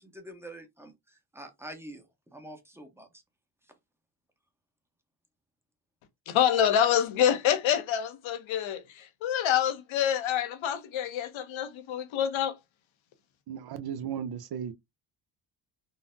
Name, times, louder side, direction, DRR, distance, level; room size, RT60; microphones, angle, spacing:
voice 1, 0.0-3.2, right 1 dB, 5° right, 0.8 m, -46 dB
voice 2, 6.3-12.6, left 9 dB, 70° left, 0.7 m, -27 dB
voice 3, 13.5-14.7, right 8 dB, 50° right, 0.6 m, -35 dB
3.8 x 2.0 x 2.5 m
cardioid pair, 95°, 48 cm